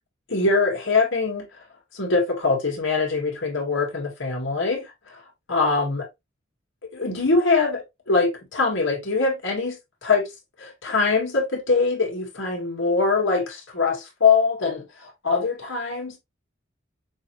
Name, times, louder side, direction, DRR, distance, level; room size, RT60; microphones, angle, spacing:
voice 1, 0.3-1.5 1.9-5.2 5.5-6.1 6.9-10.3 10.6-16.2, left 4 dB, 80° left, 2.0 m, -23 dB
6.0 x 2.9 x 2.9 m
head